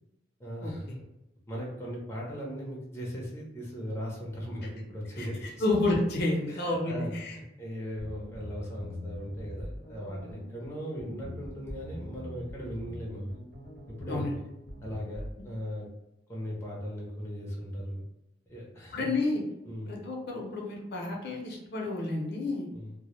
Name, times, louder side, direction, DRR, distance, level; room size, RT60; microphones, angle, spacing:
voice 1, 0.4-1.1 1.5-5.6 6.5-13.4 13.9-14.4 14.8-15.9 16.3-18.0 18.5-19.1 19.7-19.9 22.7-22.9, equal, 15° left, -4 dB, 0.5 m, -38 dB
voice 2, 5.6-7.4 14.1-14.3 18.9-19.4 19.9-22.7, left 2 dB, 60° left, -1 dB, 0.5 m, -30 dB
sound 1, 8.0-15.4, left 1 dB, 60° right, 0.9 m, -42 dB
2.1 x 2.0 x 3.0 m, 0.91 s
head